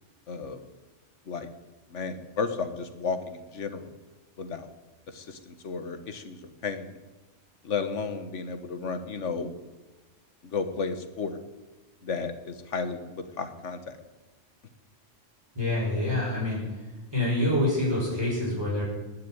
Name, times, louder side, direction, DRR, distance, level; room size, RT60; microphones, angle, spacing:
voice 1, 0.3-0.6 1.3-1.5 1.9-3.9 4.4-4.7 5.1-7.0 7.6-9.5 10.4-11.4 12.0-14.0, left 5 dB, 80° left, 9 dB, 1.6 m, -33 dB
voice 2, 15.5-16.6 17.1-18.8, left 1 dB, 20° right, -6 dB, 6.0 m, -26 dB
20.0 x 6.8 x 9.2 m, 1.2 s
omnidirectional pair, 1.2 m